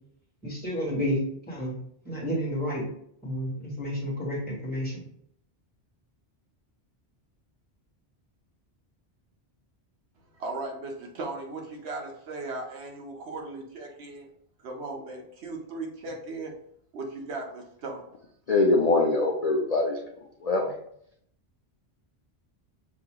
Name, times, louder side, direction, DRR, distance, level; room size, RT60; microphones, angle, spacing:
voice 1, 0.4-1.2 1.5-1.7 2.0-2.8 3.2-5.0, equal, 10° left, -6 dB, 1.6 m, -30 dB
voice 2, 10.3-14.3 14.6-16.6 16.9-18.0, right 2 dB, 85° right, 1 dB, 1.1 m, -37 dB
voice 3, 18.5-20.0 20.4-20.8, left 3 dB, 50° left, 0 dB, 0.5 m, -23 dB
6.2 x 2.9 x 2.2 m, 0.69 s
omnidirectional pair, 1.1 m